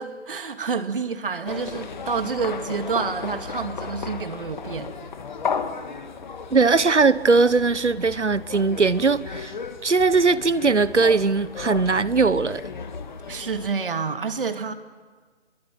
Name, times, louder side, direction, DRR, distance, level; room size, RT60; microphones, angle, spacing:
voice 1, 0.0-5.0 13.3-14.7, right 5 dB, 50° right, 2.4 m, -28 dB
sound 1, 1.5-13.7, left 5 dB, 40° left, 1.8 m, -34 dB
voice 2, 6.5-9.5 9.8-12.6, right 4 dB, 85° right, 1.3 m, -20 dB
27.0 x 23.0 x 9.1 m
figure-of-eight pair, 155°, 34 cm